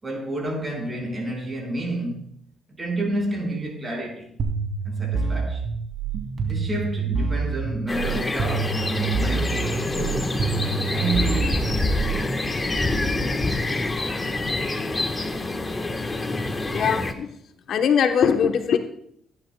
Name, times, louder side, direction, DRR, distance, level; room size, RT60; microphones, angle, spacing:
voice 1, 0.0-2.3 2.7-4.3 4.8-5.6 6.4-10.4 10.9-12.0, right 1 dB, 30° right, 5.1 m, -30 dB
sound 1, 4.4-12.4, right 4 dB, 60° right, 2.5 m, -27 dB
sound 2, 7.9-17.1, left 2 dB, 25° left, 1.2 m, -26 dB
voice 2, 16.7-17.3 17.7-18.8, left 7 dB, 70° left, 1.0 m, -21 dB
16.5 x 11.0 x 2.2 m
cardioid pair, 90°, 0 cm